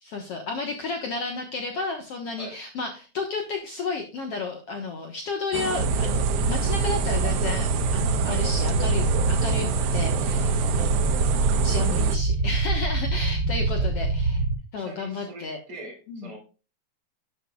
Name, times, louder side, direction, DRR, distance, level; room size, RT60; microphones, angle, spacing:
voice 1, 0.0-11.1 11.6-14.4 14.7-15.6 16.1-16.3, left 4 dB, 60° left, 3 dB, 1.7 m, -32 dB
sound 1, 5.5-12.2, right 9 dB, 85° right, 2.8 m, -30 dB
sound 2, 5.8-14.5, right 3 dB, 65° right, 0.9 m, -24 dB
voice 2, 14.8-16.4, right 2 dB, 35° right, 0 dB, 4.4 m, -42 dB
12.0 x 7.9 x 2.3 m, 0.33 s
omnidirectional pair, 4.2 m